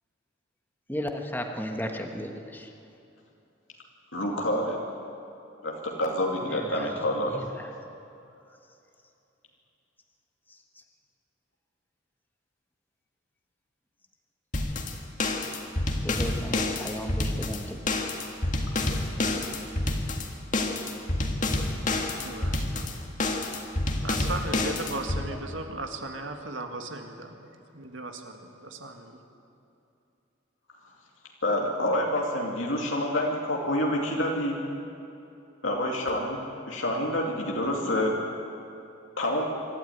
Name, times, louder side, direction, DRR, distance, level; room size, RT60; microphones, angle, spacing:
voice 1, 0.9-2.7 6.4-7.0 7.3-7.7 16.0-17.8, equal, 10° left, 3 dB, 1.3 m, -35 dB
voice 2, 4.1-4.8 5.6-7.4 31.4-34.6 35.6-36.4 36.7-38.2 39.2-39.4, left 1 dB, 85° left, -1 dB, 2.5 m, -27 dB
sound 1, 14.5-25.2, left 2 dB, 40° left, 1.8 m, -28 dB
voice 3, 22.2-22.9 24.0-29.2, right 2 dB, 80° right, 4 dB, 2.0 m, -37 dB
25.0 x 13.0 x 9.2 m, 2.8 s
head